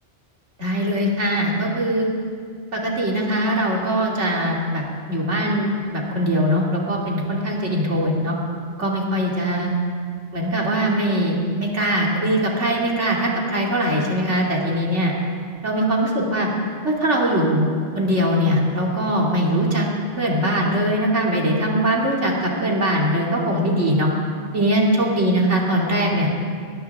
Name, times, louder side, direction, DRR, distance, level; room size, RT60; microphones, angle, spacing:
voice 1, 0.6-2.1 2.7-4.8 5.1-8.4 8.8-9.7 10.3-15.1 15.6-16.5 16.8-17.7 17.9-19.9 20.2-24.1 24.5-26.3, equal, 85° right, -2 dB, 3.1 m, -21 dB
21.0 x 19.0 x 3.6 m, 2.1 s
omnidirectional pair, 1.2 m